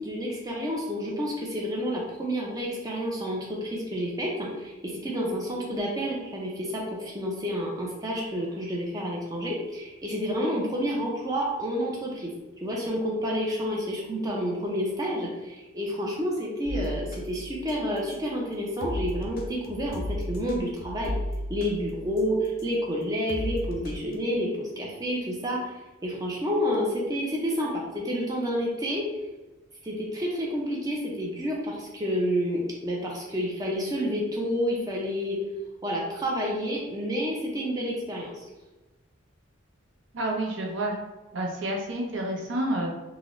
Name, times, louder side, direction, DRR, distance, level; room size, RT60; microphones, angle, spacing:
voice 1, 0.0-12.3 12.6-21.1 21.5-29.0 29.8-35.4 35.8-38.5, equal, 20° right, -3 dB, 0.4 m, -29 dB
sound 1, 16.7-18.3 18.8-22.8 23.3-24.2, left 1 dB, 45° left, 0.4 m, -35 dB
voice 2, 40.1-41.0 41.3-42.9, right 1 dB, 65° right, 0 dB, 0.6 m, -29 dB
3.7 x 2.0 x 3.0 m, 1.1 s
head